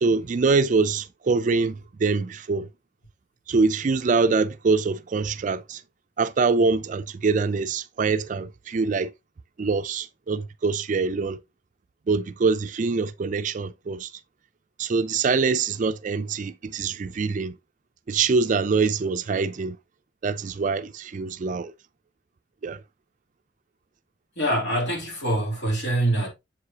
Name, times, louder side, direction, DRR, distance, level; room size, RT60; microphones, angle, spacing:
voice 1, 0.0-2.7 3.5-5.8 6.2-9.1 9.6-11.4 12.1-14.1 14.8-17.6 18.1-19.8 20.2-21.7 22.6-22.8, right 4 dB, 45° right, 0.4 m, -24 dB
voice 2, 24.4-26.3, right 1 dB, 70° left, 2.7 m, -24 dB
7.3 x 4.8 x 2.7 m
head